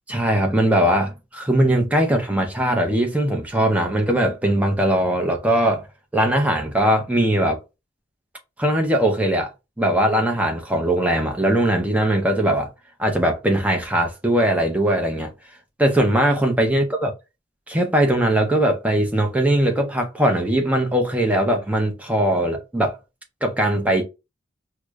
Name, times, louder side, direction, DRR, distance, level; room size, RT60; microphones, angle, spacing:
voice 1, 0.1-5.9 6.1-7.6 8.6-9.5 9.8-12.7 13.0-15.3 15.8-17.1 17.7-23.0 23.4-24.0, right 1 dB, 5° right, 0.5 m, -20 dB
4.7 x 2.0 x 2.3 m
head